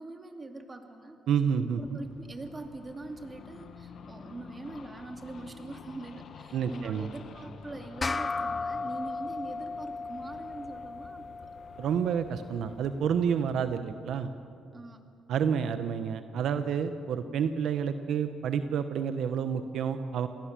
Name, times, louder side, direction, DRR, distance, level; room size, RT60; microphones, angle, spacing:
voice 1, 0.0-1.2 1.5-11.3 14.7-15.0, right 2 dB, 25° right, 5 dB, 2.6 m, -43 dB
voice 2, 1.3-2.0 6.5-7.1 11.8-14.3 15.3-20.3, right 7 dB, 75° right, 9 dB, 1.0 m, -29 dB
sound 1, 1.7-13.8, left 6 dB, 60° left, 1.5 m, -50 dB
sound 2, 8.0-12.8, left 4 dB, 30° left, 0.6 m, -36 dB
28.0 x 18.5 x 7.5 m, 2.4 s
cardioid pair, 90°, 0 cm